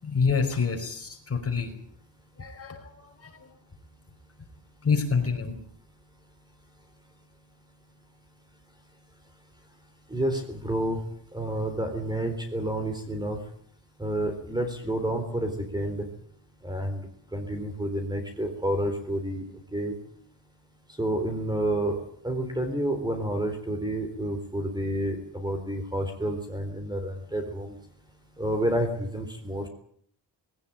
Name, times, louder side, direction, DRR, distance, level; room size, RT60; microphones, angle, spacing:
voice 1, 0.0-1.7 2.4-2.9 3.2-3.5 4.8-5.6, left 5 dB, 35° left, 4 dB, 5.2 m, -27 dB
voice 2, 10.1-11.0 11.3-13.4 14.0-16.1 16.6-19.5 19.7-19.9 21.0-22.0 22.2-27.7 28.4-29.7, right 1 dB, 10° right, 6 dB, 3.8 m, -29 dB
20.0 x 18.0 x 8.9 m, 0.63 s
wide cardioid pair, 145°, 43 cm